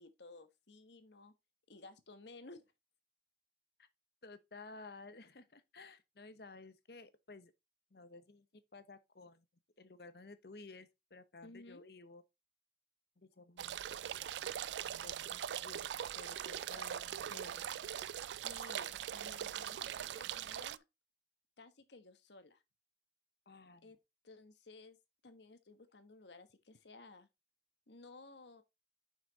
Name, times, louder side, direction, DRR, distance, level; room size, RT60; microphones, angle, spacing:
voice 1, 0.0-1.3 1.7-2.7 11.4-11.9 18.1-20.8 21.6-22.6 23.8-24.0 24.2-25.0 25.2-27.3 27.9-28.6, left 3 dB, 80° left, 1.2 m, -56 dB
voice 2, 4.2-7.5 7.9-9.4 9.8-12.2 13.2-13.7 14.0-14.8 15.0-15.9 16.2-17.7 23.5-23.9, left 3 dB, 65° left, 0.9 m, -55 dB
sound 1, 13.6-20.8, right 10 dB, 80° right, 0.3 m, -41 dB
6.2 x 5.8 x 4.1 m
head